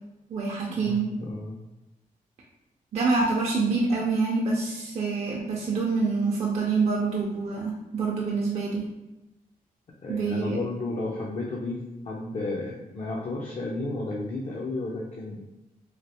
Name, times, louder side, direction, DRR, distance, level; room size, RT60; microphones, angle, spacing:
voice 1, 0.3-1.1 2.9-8.9 10.1-10.6, right 4 dB, 45° right, -3 dB, 0.5 m, -26 dB
voice 2, 0.8-1.6 10.0-15.4, left 2 dB, 45° left, -3 dB, 0.5 m, -32 dB
3.2 x 2.4 x 2.8 m, 0.97 s
wide cardioid pair, 110°, 15 cm